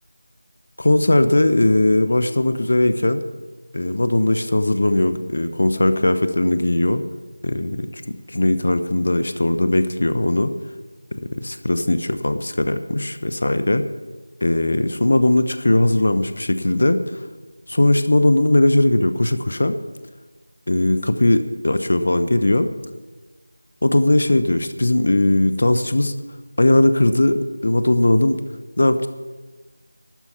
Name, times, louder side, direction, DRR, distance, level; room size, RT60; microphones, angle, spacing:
voice 1, 0.8-3.2 3.7-7.0 7.4-7.8 8.1-10.5 11.2-13.8 14.4-17.2 17.7-19.8 20.7-22.7 23.8-26.1 26.6-28.4 28.8-29.1, left 1 dB, 45° left, 10 dB, 0.9 m, -19 dB
12.0 x 9.7 x 8.4 m, 1.3 s
figure-of-eight pair, 170°, 0 cm